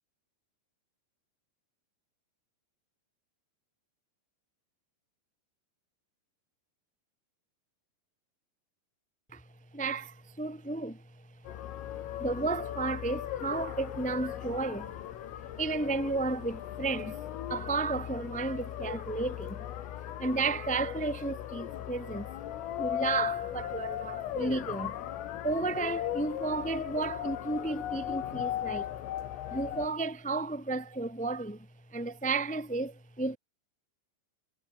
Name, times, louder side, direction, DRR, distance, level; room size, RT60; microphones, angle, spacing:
voice 1, 9.7-11.0 12.2-14.9 15.6-17.2 17.5-19.7 20.2-22.3 22.8-25.0 25.4-28.9 29.5-33.4, right 3 dB, 5° left, 0.7 m, -33 dB
sound 1, 11.5-29.9, left 12 dB, 80° left, 4.7 m, -37 dB
omnidirectional pair, 5.9 m